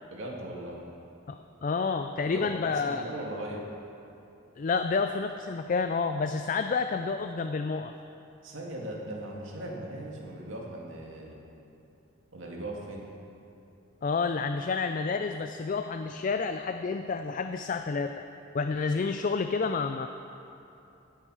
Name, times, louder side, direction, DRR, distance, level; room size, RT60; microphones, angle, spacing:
voice 1, 0.1-0.8 2.3-2.5 2.8-3.7 8.4-11.4 12.3-13.1, right 1 dB, 75° right, -2 dB, 2.2 m, -38 dB
voice 2, 1.3-3.0 4.6-7.9 14.0-18.2 18.5-20.1, left 4 dB, 40° left, 8 dB, 0.4 m, -29 dB
16.5 x 8.6 x 4.9 m, 2.9 s
head